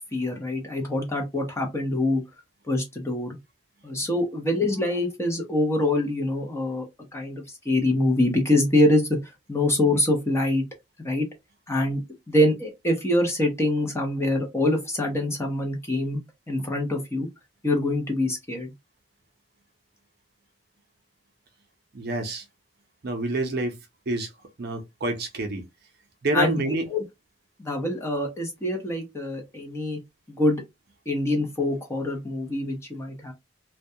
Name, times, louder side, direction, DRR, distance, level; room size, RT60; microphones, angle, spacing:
voice 1, 0.1-2.2 2.7-3.4 3.8-6.9 7.1-9.1 9.5-10.6 11.0-11.3 11.7-12.0 12.3-16.2 16.5-17.3 17.6-18.7 26.3-26.6 26.9-27.0 27.6-30.0 30.3-30.6 31.1-33.3, left 1 dB, 15° left, 0.6 m, -25 dB
voice 2, 21.9-22.4 23.0-23.8 24.1-24.3 24.6-25.7 26.2-26.8, right 2 dB, 50° right, 0.5 m, -27 dB
2.2 x 2.2 x 2.7 m
head